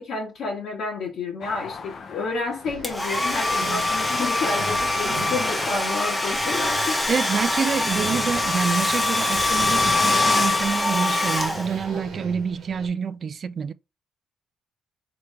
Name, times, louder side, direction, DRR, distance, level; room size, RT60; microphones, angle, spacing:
voice 1, 0.0-7.1, left 4 dB, 70° left, 1.3 m, -30 dB
sound 1, 1.4-10.8, left 5 dB, 55° left, 0.6 m, -38 dB
sound 2, 2.6-12.9, right 5 dB, 85° right, 1.1 m, -39 dB
Domestic sounds home sounds, 2.8-12.0, left 2 dB, 15° left, 0.9 m, -24 dB
voice 2, 7.1-13.7, right 6 dB, 45° right, 0.3 m, -27 dB
3.4 x 3.0 x 3.2 m
cardioid pair, 90°, 0 cm